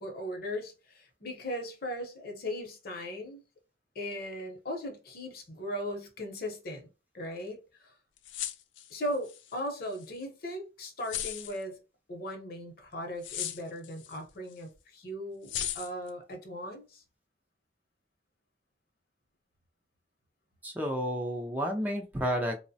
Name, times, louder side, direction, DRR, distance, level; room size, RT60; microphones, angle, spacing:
voice 1, 0.0-3.4 3.9-6.9 7.1-7.9 8.9-11.8 12.1-17.0, equal, 55° left, 0.7 m, -38 dB
sound 1, 8.2-9.5 9.9-10.1 11.0-11.6 13.2-14.2 14.5-14.6 15.5-16.1, left 11 dB, 85° left, 0.3 m, -36 dB
voice 2, 20.6-22.6, equal, 10° right, 0.3 m, -31 dB
3.0 x 2.0 x 2.6 m
head